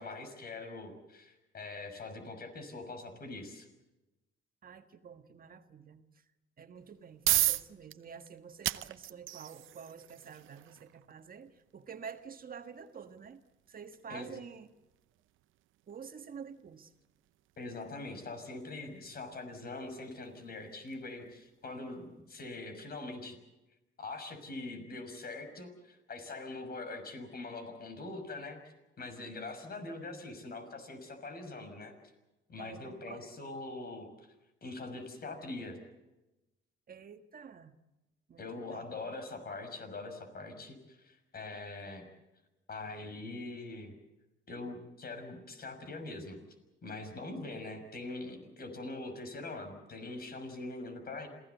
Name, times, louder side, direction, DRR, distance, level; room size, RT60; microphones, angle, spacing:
voice 1, 0.0-3.7 14.1-14.4 17.6-23.4 24.0-28.6 29.0-31.9 32.5-34.1 34.6-35.8 38.4-42.0 42.7-43.9 44.5-46.4 46.8-51.3, left 2 dB, 50° left, 7 dB, 6.2 m, -43 dB
voice 2, 4.6-6.0 6.6-14.7 15.9-16.9 32.6-33.2 36.9-37.7 38.3-39.1, right 6 dB, 45° right, 8 dB, 1.5 m, -49 dB
sound 1, 6.8-21.6, right 15 dB, 85° right, 0.8 m, -39 dB
27.5 x 16.5 x 8.2 m, 1.0 s
cardioid pair, 90°, 20 cm